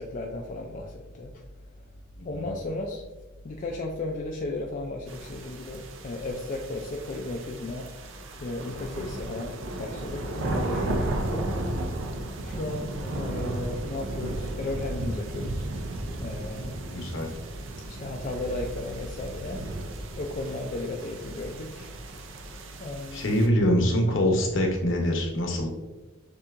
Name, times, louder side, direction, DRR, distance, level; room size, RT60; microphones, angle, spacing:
voice 1, 0.0-1.3 2.2-3.0 3.4-7.9 8.4-11.5 12.4-15.7 16.2-16.8 17.9-19.6 20.2-21.9 22.8-23.4, left 2 dB, 40° left, 0 dB, 0.4 m, -35 dB
voice 2, 2.2-2.5 16.9-17.3 23.1-25.7, equal, 60° left, 1 dB, 0.8 m, -24 dB
sound 1, 5.1-23.5, right 1 dB, 65° right, 0.5 m, -34 dB
6.8 x 2.8 x 2.5 m, 1.1 s
head